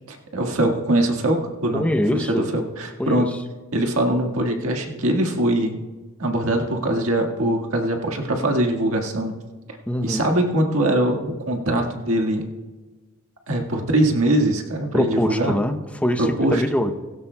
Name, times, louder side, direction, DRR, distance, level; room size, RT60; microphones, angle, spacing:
voice 1, 0.1-1.8 2.1-3.3 3.7-5.7 6.2-9.3 10.0-12.4 13.5-15.5 16.2-16.6, right 1 dB, 75° right, 2 dB, 1.6 m, -22 dB
voice 2, 1.7-2.5 3.0-3.4 9.9-10.2 14.9-16.9, left 1 dB, 5° left, 5 dB, 0.7 m, -23 dB
17.5 x 16.0 x 2.2 m, 1.3 s
head